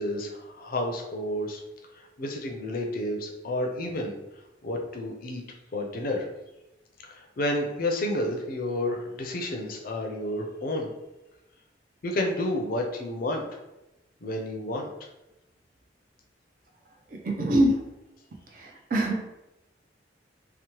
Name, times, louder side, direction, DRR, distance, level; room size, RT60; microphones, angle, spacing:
voice 1, 0.0-1.6 1.9-4.1 4.6-5.4 5.7-6.2 7.1-10.9 12.0-13.5 14.2-14.9, left 1 dB, 50° left, 1 dB, 0.4 m, -30 dB
voice 2, 17.2-17.7 18.6-19.2, right 1 dB, 50° right, 0 dB, 0.4 m, -23 dB
2.8 x 2.0 x 2.9 m, 0.96 s
head